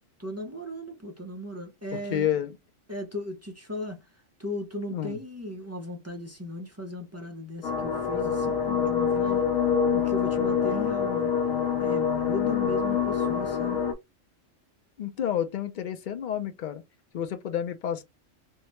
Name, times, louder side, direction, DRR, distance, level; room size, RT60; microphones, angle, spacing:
voice 1, 0.2-2.3 2.9-4.1 4.4-9.5 9.9-11.3 11.8-13.8, equal, 25° right, 0.3 m, -37 dB
voice 2, 2.1-2.6 4.9-5.2 15.0-16.8 17.1-18.0, left 10 dB, 60° left, 0.5 m, -30 dB
sound 1, 7.6-13.9, left 7 dB, 80° left, 1.0 m, -26 dB
3.6 x 2.1 x 2.9 m
omnidirectional pair, 1.3 m